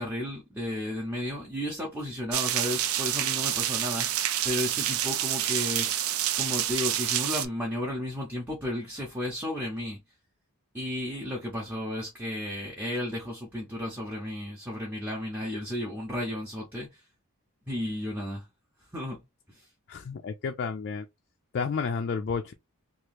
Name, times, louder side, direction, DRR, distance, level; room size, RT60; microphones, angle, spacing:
voice 1, 0.0-6.0 6.4-10.0 10.7-17.0 17.7-18.5 18.9-19.2 19.5-19.7, left 1 dB, 10° right, 0.7 m, -33 dB
sound 1, 2.3-7.5, right 11 dB, 75° right, 0.4 m, -28 dB
voice 2, 19.9-21.1 21.5-22.5, left 5 dB, 50° left, 0.3 m, -31 dB
3.0 x 2.4 x 3.2 m
head